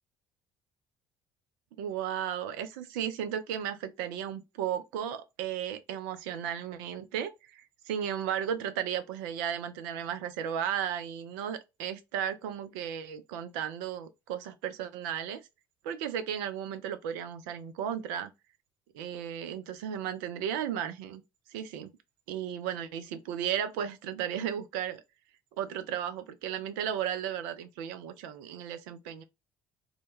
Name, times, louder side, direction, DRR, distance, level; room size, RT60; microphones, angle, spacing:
voice 1, 1.8-15.4 15.8-18.3 18.9-21.2 21.5-21.9 22.3-25.0 25.6-29.2, right 9 dB, 65° right, 0.4 m, -35 dB
2.1 x 2.0 x 2.9 m
figure-of-eight pair, 50°, 11 cm